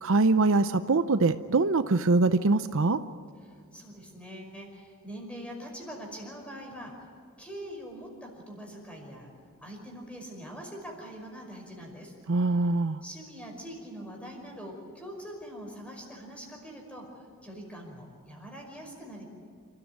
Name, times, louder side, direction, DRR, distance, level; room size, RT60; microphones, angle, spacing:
voice 1, 0.0-3.0 12.3-13.0, right 3 dB, 65° right, 11 dB, 0.7 m, -23 dB
voice 2, 3.4-6.9 7.4-9.3 9.6-12.1 13.0-19.3, equal, 5° left, 1 dB, 5.4 m, -43 dB
28.5 x 14.0 x 9.5 m, 2.2 s
head